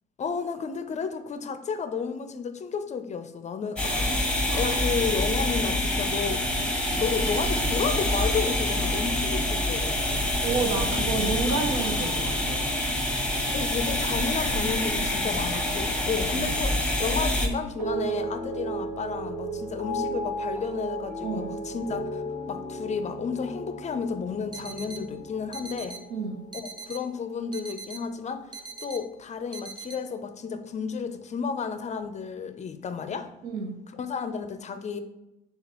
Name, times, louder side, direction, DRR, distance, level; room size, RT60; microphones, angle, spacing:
voice 1, 0.2-4.2 4.5-6.4 6.9-10.2 13.5-22.2 22.5-26.0 26.5-28.5 28.8-33.3 33.9-35.0, left 6 dB, 35° left, 10 dB, 0.5 m, -32 dB
sound 1, 3.8-17.5, left 1 dB, 5° left, 0.9 m, -26 dB
voice 2, 4.5-4.8 8.9-9.0 10.4-12.7 16.3-16.5 21.2-21.6 26.1-26.4 33.4-33.8, right 4 dB, 85° right, 5 dB, 0.7 m, -30 dB
sound 2, 17.8-28.2 28.4-29.0, right 1 dB, 70° right, 1.6 m, -35 dB
sound 3, 24.5-25.0 25.5-26.0 26.5-27.0 27.5-28.0 28.5-29.0 29.5-30.0, right 4 dB, 20° right, 0.5 m, -41 dB
6.4 x 2.4 x 2.9 m, 0.95 s
supercardioid pair, 75°, 21 cm